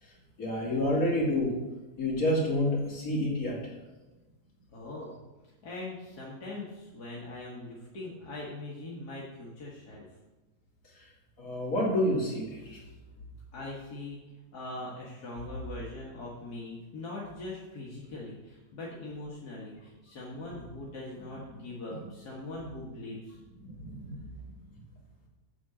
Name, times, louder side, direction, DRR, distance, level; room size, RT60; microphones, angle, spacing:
voice 1, 0.0-1.6 2.0-3.7 10.9-11.1 11.4-12.8 23.6-24.3, left 1 dB, 60° left, -4 dB, 3.0 m, -29 dB
voice 2, 4.7-5.1 5.6-10.1 13.5-14.2 14.5-23.4, left 2 dB, 80° left, -5 dB, 2.0 m, -41 dB
8.2 x 4.9 x 7.3 m, 1.1 s
omnidirectional pair, 1.7 m